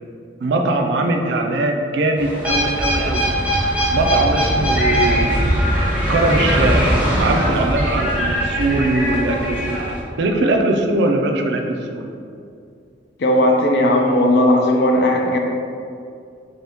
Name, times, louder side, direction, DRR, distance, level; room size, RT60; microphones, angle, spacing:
voice 1, 0.4-3.3 3.9-5.4 6.1-6.9 7.2-12.0, right 2 dB, 65° right, 3 dB, 0.3 m, -21 dB
sound 1, 2.2-10.0, equal, 5° right, 0.7 m, -20 dB
voice 2, 13.2-15.4, left 1 dB, 60° left, 2 dB, 0.4 m, -16 dB
3.6 x 2.8 x 3.4 m, 2.4 s
head